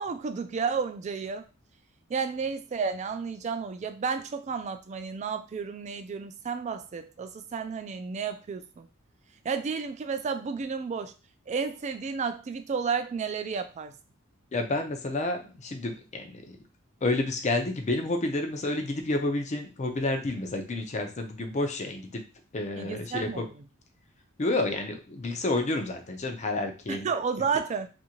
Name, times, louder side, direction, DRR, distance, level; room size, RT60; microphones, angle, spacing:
voice 1, 0.0-1.5 2.1-8.9 9.4-11.1 11.5-13.9 22.8-23.5 26.9-27.9, right 5 dB, 35° right, 9 dB, 0.3 m, -32 dB
voice 2, 14.5-16.4 17.0-22.2 22.5-23.5 24.4-27.1, left 2 dB, 35° left, 5 dB, 0.5 m, -30 dB
2.6 x 2.6 x 2.8 m, 0.32 s
head